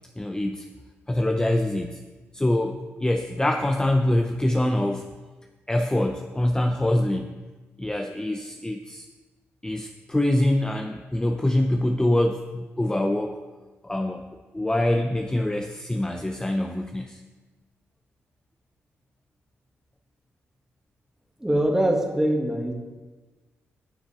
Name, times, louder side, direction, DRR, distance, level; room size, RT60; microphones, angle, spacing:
voice 1, 0.2-0.7 1.1-2.0 2.3-5.1 5.7-7.3 7.8-9.0 9.6-13.4 13.8-14.2 14.5-17.2, left 1 dB, 15° left, 4 dB, 0.7 m, -24 dB
voice 2, 21.4-22.7, right 1 dB, 10° right, 1 dB, 2.0 m, -23 dB
12.5 x 6.8 x 4.3 m, 1.2 s
supercardioid pair, 55°, 5 cm